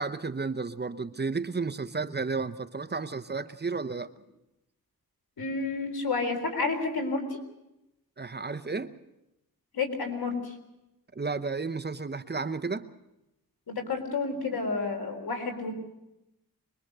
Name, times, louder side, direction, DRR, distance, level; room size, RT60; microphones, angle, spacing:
voice 1, 0.0-4.1 8.2-8.9 11.2-12.9, right 4 dB, 30° right, 10 dB, 0.8 m, -32 dB
voice 2, 5.4-7.4 9.7-10.5 13.7-15.7, left 3 dB, 90° left, 4 dB, 4.0 m, -30 dB
24.0 x 21.5 x 6.7 m, 0.90 s
wide cardioid pair, 110°, 36 cm